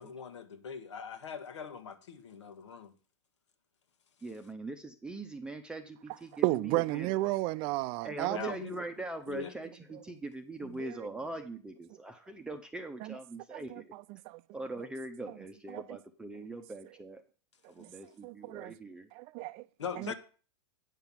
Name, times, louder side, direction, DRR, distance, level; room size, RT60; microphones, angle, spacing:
voice 1, 0.0-2.9 8.3-8.8 9.3-9.5 19.8-20.1, left 7 dB, 85° left, 1.6 m, -41 dB
voice 2, 4.2-7.3 8.0-13.9 14.5-17.2 17.7-19.1 19.9-20.1, right 2 dB, 5° right, 0.8 m, -42 dB
voice 3, 6.4-8.5 10.8-10.9 13.0-13.2 13.5-13.8 14.3-14.4 15.7-15.8 17.8-17.9 18.2-18.7 19.1-19.6 20.0-20.1, right 19 dB, 40° right, 0.5 m, -32 dB
9.1 x 5.8 x 7.2 m
hypercardioid pair, 130°, 15 cm